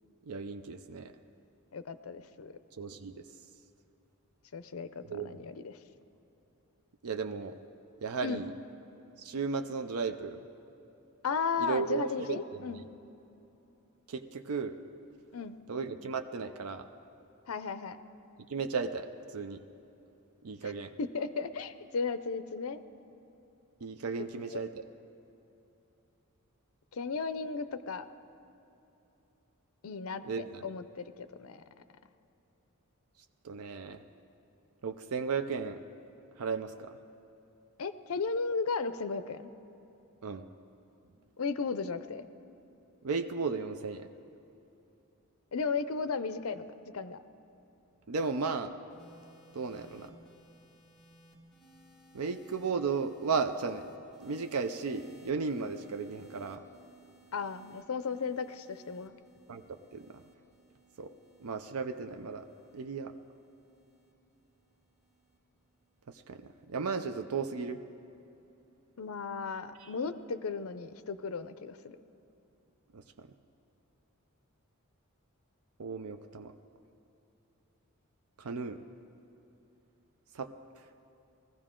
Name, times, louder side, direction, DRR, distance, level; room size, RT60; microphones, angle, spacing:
voice 1, 0.3-1.1 2.8-3.2 5.1-5.3 7.0-7.6 8.0-8.5 9.2-10.4 11.6-12.8 14.1-14.8 15.7-16.9 18.5-19.6 20.4-20.9 23.8-24.8 30.2-30.7 33.4-34.0 34.8-35.8 36.4-37.0 40.2-40.4 43.0-44.1 48.1-48.8 49.5-50.2 52.1-53.9 54.2-56.6 59.5-59.6 59.9-60.2 61.0-61.1 61.4-62.5 62.7-63.1 66.1-67.8 69.8-69.9 72.9-73.3 75.8-76.5 78.4-78.8 80.3-80.5, right 5 dB, 85° right, 8 dB, 0.5 m, -35 dB
voice 2, 1.7-2.5 4.5-5.8 8.2-8.4 11.2-12.9 15.3-15.6 17.5-18.0 21.0-22.8 24.2-24.6 26.9-28.1 29.8-31.6 37.8-39.5 41.4-42.3 45.5-47.2 57.3-59.2 69.0-72.0, left 5 dB, 75° left, 12 dB, 0.5 m, -35 dB
sound 1, 48.9-65.4 66.3-66.6, right 2 dB, ahead, 2.1 m, -60 dB
20.0 x 15.0 x 3.8 m, 2.9 s
head